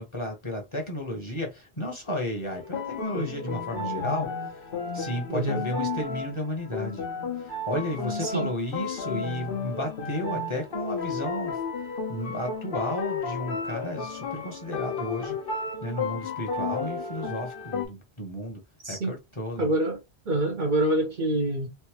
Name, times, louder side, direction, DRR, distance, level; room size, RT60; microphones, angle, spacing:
voice 1, 0.0-7.0 7.3-11.6 12.1-15.4 15.8-18.6 18.9-19.7, left 1 dB, 30° left, 1.0 m, -33 dB
sound 1, 2.5-17.9, left 4 dB, 60° left, 1.0 m, -33 dB
voice 2, 5.3-5.6 8.2-8.5 18.8-19.1 19.6-20.0 20.3-21.7, right 1 dB, 50° right, 0.8 m, -26 dB
3.4 x 2.7 x 2.9 m
omnidirectional pair, 1.1 m